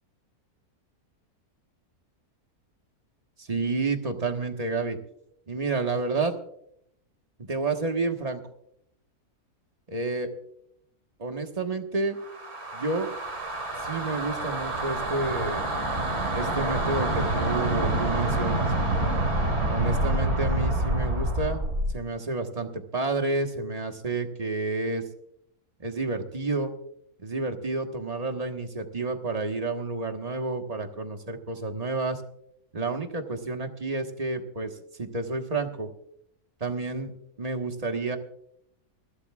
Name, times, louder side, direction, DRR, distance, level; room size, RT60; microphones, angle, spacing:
voice 1, 3.4-5.0 5.5-6.3 7.5-8.4 9.9-10.3 11.2-12.2 12.7-13.1 13.8-15.6 16.3-18.7 19.7-21.6 21.9-25.0 25.8-26.7 27.2-32.2 32.7-34.7 35.0-35.9 36.6-37.1 37.4-38.2, right 3 dB, 25° right, 4 dB, 1.4 m, -30 dB
sound 1, 12.2-22.0, right 1 dB, 45° right, 2.7 m, -27 dB
28.5 x 12.0 x 2.4 m, 0.72 s
omnidirectional pair, 1.6 m